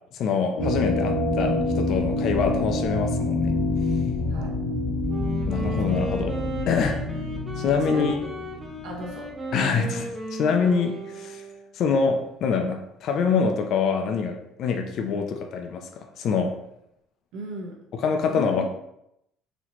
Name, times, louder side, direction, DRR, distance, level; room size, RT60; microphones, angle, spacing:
voice 1, 0.1-3.5 5.5-6.3 6.7-7.0 7.6-8.2 9.5-11.4 11.7-16.5 17.9-18.7, left 5 dB, 45° left, 4 dB, 0.4 m, -25 dB
sound 1, 0.6-9.2, left 2 dB, 85° left, 1.3 m, -27 dB
voice 2, 4.3-4.6 7.9-8.2 8.8-9.3 17.3-17.9 18.2-18.6, right 2 dB, 65° right, -1 dB, 0.8 m, -36 dB
Wind instrument woodwind instrument, 5.0-11.8, right 1 dB, 5° right, 0.6 m, -36 dB
4.1 x 2.8 x 2.9 m, 0.81 s
cardioid pair, 175°, 0 cm